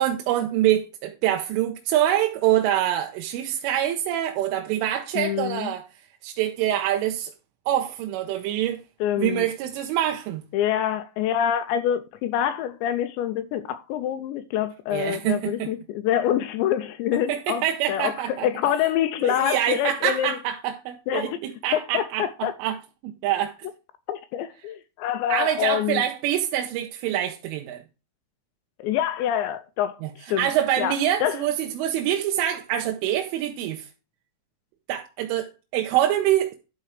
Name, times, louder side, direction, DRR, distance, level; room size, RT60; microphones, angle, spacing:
voice 1, 0.0-5.9 6.2-7.3 7.7-8.8 9.2-10.4 14.9-15.7 17.3-18.5 19.2-22.8 23.0-23.7 25.3-27.8 30.0-30.1 30.4-33.9 34.9-36.5, right 11 dB, 90° right, 3.3 m, -25 dB
voice 2, 5.2-5.7 9.0-9.5 10.5-20.4 21.1-21.4 21.7-22.5 24.1-26.0 28.8-30.5 30.8-31.4, left 10 dB, 80° left, 2.7 m, -26 dB
11.5 x 4.3 x 4.8 m
omnidirectional pair, 5.5 m